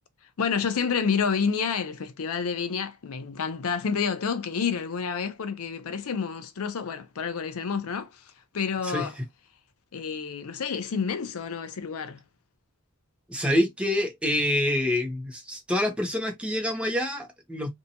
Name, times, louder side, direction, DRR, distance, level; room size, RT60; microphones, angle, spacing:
voice 1, 0.4-8.2 8.5-9.1 9.9-12.2, left 6 dB, 70° left, 0.5 m, -29 dB
voice 2, 8.8-9.3 13.3-17.7, left 1 dB, 5° right, 0.6 m, -27 dB
2.7 x 2.2 x 2.7 m
head